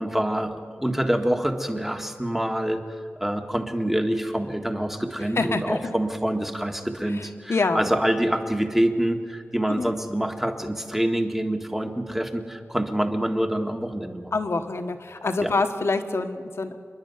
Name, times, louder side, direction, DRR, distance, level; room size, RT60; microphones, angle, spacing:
voice 1, 0.0-2.8 3.2-14.3 15.4-15.5, right 1 dB, 5° right, 4 dB, 1.7 m, -26 dB
voice 2, 5.4-5.9 7.5-7.9 9.7-9.9 14.3-16.8, left 3 dB, 70° left, 7 dB, 1.5 m, -26 dB
27.0 x 11.0 x 9.6 m, 2.2 s
wide cardioid pair, 90°, 5 cm